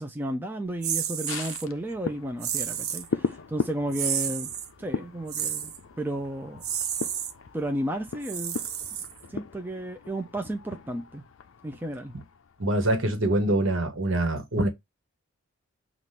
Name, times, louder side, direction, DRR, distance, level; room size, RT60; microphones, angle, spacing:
voice 1, 0.0-4.5 4.8-6.6 7.5-8.6 9.3-11.2 11.6-12.1, right 1 dB, 10° right, 0.5 m, -33 dB
sound 1, 0.8-1.6 2.4-3.1 3.9-4.7 5.3-5.8 6.6-7.3 8.2-9.4, right 9 dB, 85° right, 0.8 m, -31 dB
sound 2, 1.3-12.9 13.3-13.4, left 5 dB, 60° left, 0.4 m, -38 dB
voice 2, 12.6-14.7, right 1 dB, 65° right, 1.3 m, -24 dB
5.8 x 2.5 x 3.3 m
head